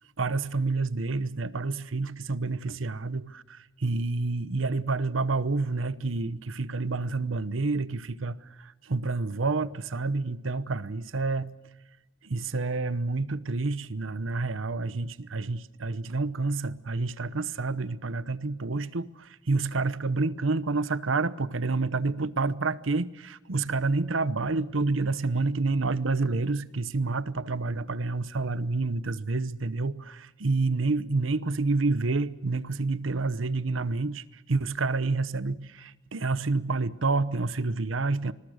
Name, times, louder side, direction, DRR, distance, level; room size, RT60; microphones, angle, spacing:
voice 1, 0.2-11.5 12.2-38.3, right 3 dB, 80° right, 0.9 m, -29 dB
26.0 x 21.0 x 6.5 m
head